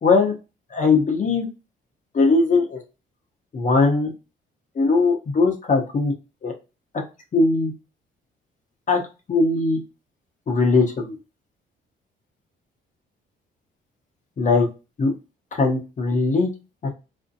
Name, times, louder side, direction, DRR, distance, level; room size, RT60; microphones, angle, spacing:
voice 1, 0.0-0.3 0.7-1.5 2.1-2.8 3.5-4.1 4.8-6.1 6.4-6.5 7.3-7.7 8.9-9.0 9.3-9.8 10.5-11.2 14.4-14.7 15.0-15.1 15.5-16.5, left 3 dB, 40° left, 1 dB, 0.8 m, -19 dB
2.5 x 2.1 x 2.6 m, 0.29 s
cardioid pair, 90°, 20 cm